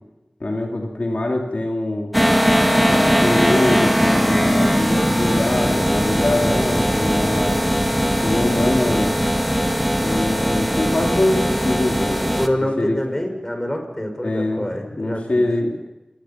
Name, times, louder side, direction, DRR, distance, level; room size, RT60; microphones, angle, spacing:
voice 1, 0.4-2.1 2.9-7.6 8.2-9.2 10.0-13.0 14.2-15.8, left 1 dB, 65° left, 1 dB, 2.9 m, -23 dB
sound 1, 2.1-12.5, equal, ahead, 2.2 m, -19 dB
voice 2, 12.4-15.5, left 1 dB, 15° left, 4 dB, 5.7 m, -25 dB
28.0 x 19.0 x 5.9 m, 1.0 s
wide cardioid pair, 60°, 2 cm